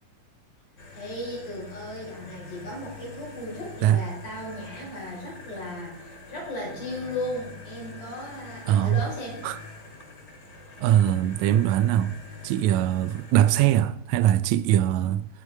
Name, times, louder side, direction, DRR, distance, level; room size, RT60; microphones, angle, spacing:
sound 1, 0.8-13.7, left 3 dB, 35° left, 2.4 m, -45 dB
voice 1, 0.9-9.4, left 1 dB, 75° left, 7.0 m, -36 dB
voice 2, 8.7-9.0 9.4-9.6 10.8-12.2 12.4-15.3, right 12 dB, 80° right, 1.8 m, -21 dB
20.5 x 7.9 x 4.4 m
omnidirectional pair, 3.6 m